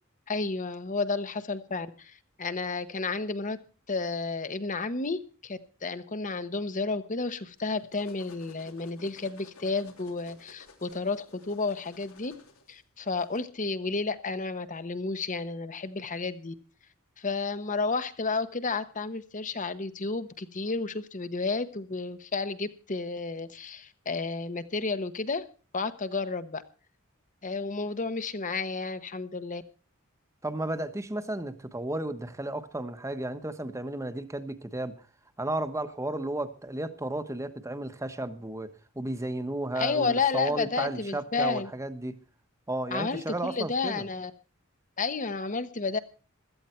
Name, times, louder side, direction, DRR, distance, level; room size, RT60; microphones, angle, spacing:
voice 1, 0.3-3.6 3.9-12.3 12.7-16.5 17.2-25.5 25.7-26.6 27.4-29.6 39.7-41.7 42.9-44.3 45.0-46.0, left 4 dB, 40° left, 1.1 m, -31 dB
sound 1, 7.6-13.4, left 3 dB, 90° left, 3.1 m, -54 dB
voice 2, 30.4-35.0 35.4-42.2 42.7-44.1, right 1 dB, 15° right, 1.2 m, -33 dB
16.5 x 13.0 x 4.5 m
head